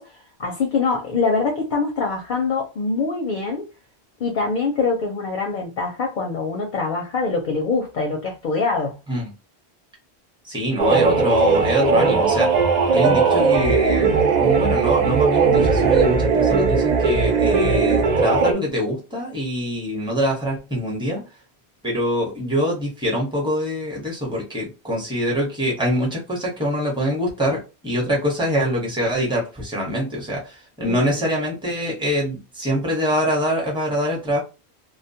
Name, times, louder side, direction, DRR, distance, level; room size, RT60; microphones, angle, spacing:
voice 1, 0.0-3.6 4.2-9.0 30.9-31.2, left 4 dB, 60° left, 0.6 m, -24 dB
voice 2, 10.5-12.6 12.9-21.2 21.8-34.4, equal, 5° right, 0.9 m, -24 dB
sound 1, 10.8-18.5, right 5 dB, 55° right, 0.5 m, -18 dB
2.2 x 2.2 x 2.7 m
omnidirectional pair, 1.1 m